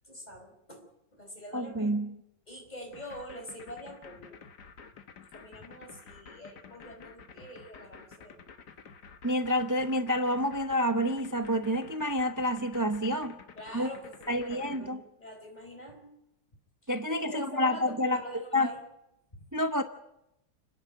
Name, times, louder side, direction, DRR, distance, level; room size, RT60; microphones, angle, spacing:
voice 1, 0.1-0.9 1.1-2.0 2.5-4.4 5.3-8.4 13.5-16.1 17.1-18.8 19.3-19.5, equal, 20° left, 2 dB, 4.9 m, -45 dB
voice 2, 1.5-2.1 9.2-13.4 13.7-13.9 14.3-15.0 16.9-18.7 19.5-19.8, equal, 15° right, 8 dB, 0.6 m, -28 dB
sound 1, 2.9-14.8, left 6 dB, 70° left, 1.9 m, -50 dB
30.0 x 10.5 x 9.2 m, 0.87 s
omnidirectional pair, 1.9 m